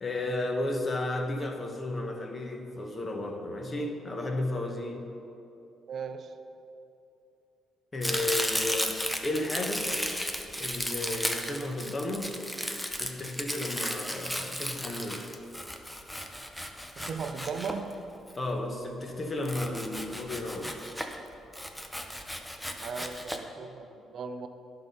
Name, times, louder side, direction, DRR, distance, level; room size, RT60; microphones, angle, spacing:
voice 1, 0.0-5.1 7.9-9.9 10.6-12.3 13.0-15.3 18.4-20.8, left 2 dB, 30° left, 3 dB, 1.0 m, -33 dB
voice 2, 5.9-6.3 17.0-17.9 22.8-24.5, right 5 dB, 60° right, 8 dB, 0.5 m, -37 dB
Domestic sounds home sounds, 8.0-18.3 19.4-21.2 21.5-23.4, equal, 5° left, 0.6 m, -34 dB
10.5 x 3.9 x 5.3 m, 2.8 s
cardioid pair, 90°, 0 cm